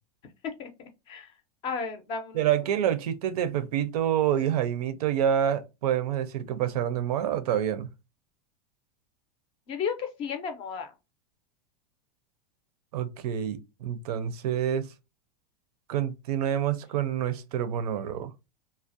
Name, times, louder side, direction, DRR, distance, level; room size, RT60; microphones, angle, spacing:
voice 1, 1.6-2.4 9.7-10.9, left 6 dB, 30° left, 0.4 m, -33 dB
voice 2, 2.3-7.9 12.9-14.9 15.9-18.3, right 10 dB, 90° right, 0.5 m, -27 dB
2.4 x 2.0 x 2.5 m
supercardioid pair, 160°, 19 cm